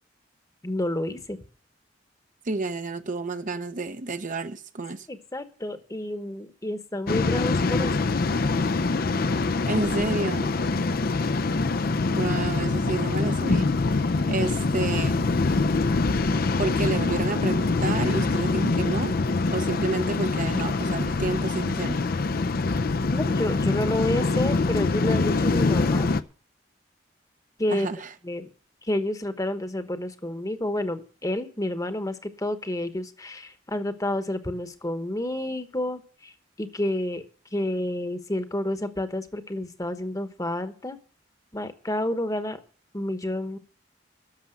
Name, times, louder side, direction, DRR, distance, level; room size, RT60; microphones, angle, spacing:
voice 1, 0.6-1.4 5.1-8.0 23.1-26.1 27.6-27.9 28.2-28.5 28.8-36.3 36.6-37.2 37.5-41.0 41.5-42.6 42.9-43.6, left 1 dB, 20° left, 1.1 m, -29 dB
voice 2, 2.4-5.1 9.7-10.5 12.1-15.3 16.6-19.1 19.5-22.0 27.7-28.1, right 3 dB, 45° right, 0.8 m, -30 dB
Waves surf, 7.1-26.2, left 3 dB, 55° left, 0.6 m, -24 dB
11.5 x 7.1 x 9.0 m
head